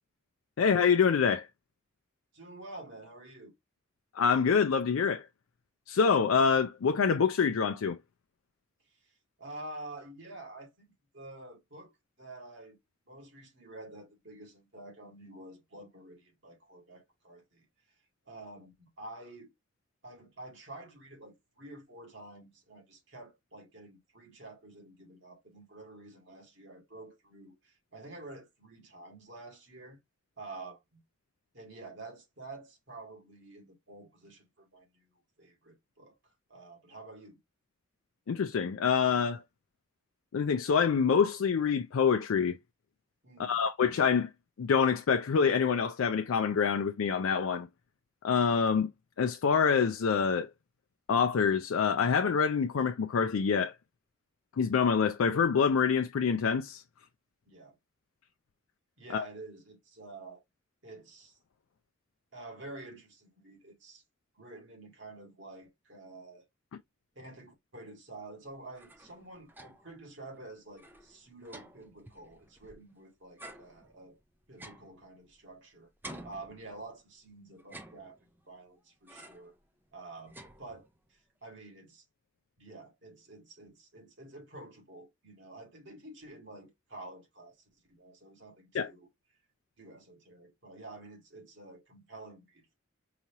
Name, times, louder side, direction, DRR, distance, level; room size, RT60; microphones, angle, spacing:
voice 1, 0.6-1.5 4.1-5.3 5.9-8.0 38.3-39.4 40.3-42.6 43.4-44.3 44.6-47.7 48.2-48.9 49.2-50.5 51.1-53.7 54.6-56.8 59.1-59.2 88.7-88.9, left 6 dB, 85° left, 0.4 m, -26 dB
voice 2, 2.3-3.5 8.9-11.9 12.2-12.8 13.1-17.7 18.3-19.5 20.0-30.0 30.4-31.0 31.5-35.1 35.4-36.2 36.5-37.4 43.2-43.6 57.5-57.8 59.0-60.4 60.8-61.4 62.3-64.0 64.3-66.4 67.2-74.2 74.5-75.9 76.2-78.2 78.5-79.5 79.9-82.0 82.6-87.6 87.9-89.1 89.8-92.8, right 2 dB, 60° right, 2.1 m, -49 dB
sound 1, 68.5-70.0 70.3-70.4 70.7-72.9 73.4-75.6 76.0-77.1 77.6-78.5 79.1-79.6 79.9-81.1, right 1 dB, 10° right, 0.5 m, -51 dB
4.8 x 2.8 x 2.9 m
head